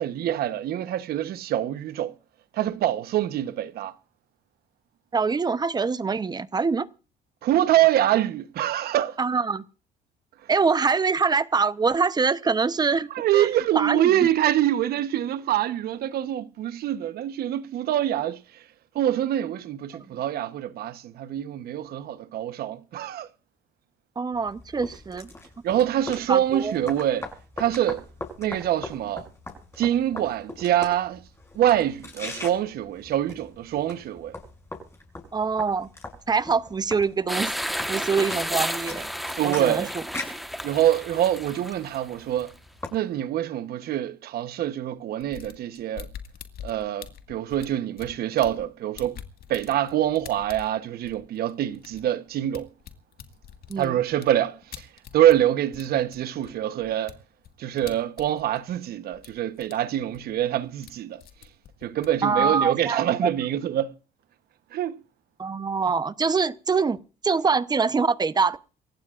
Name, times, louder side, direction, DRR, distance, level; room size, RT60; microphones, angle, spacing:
voice 1, 0.0-2.1 2.5-3.9 7.4-9.2 13.1-18.4 18.9-23.3 25.6-27.3 27.6-28.0 28.4-29.3 29.8-31.2 31.5-34.4 39.4-39.9 40.6-42.5 42.9-46.1 46.6-49.2 49.5-52.7 53.8-54.9 55.1-57.2 57.6-61.2 61.8-63.9 64.7-65.0, right 12 dB, 65° right, 1.1 m, -25 dB
voice 2, 5.1-6.9 9.2-9.6 10.5-13.5 13.7-14.3 24.2-25.3 26.3-26.8 35.3-35.9 36.3-37.5 37.9-39.1 39.4-40.0 53.7-53.9 62.2-63.3 65.4-67.0 67.2-68.6, right 5 dB, 25° right, 0.8 m, -24 dB
sound 1, 24.3-42.9, left 2 dB, 15° left, 6.6 m, -41 dB
sound 2, 37.3-42.5, equal, ahead, 1.3 m, -32 dB
sound 3, 45.2-48.7 48.9-55.4 55.7-58.9 59.1-59.7 60.0-60.9 61.2-62.9, left 9 dB, 65° left, 1.9 m, -45 dB
27.5 x 15.5 x 2.5 m
cardioid pair, 110°, 17 cm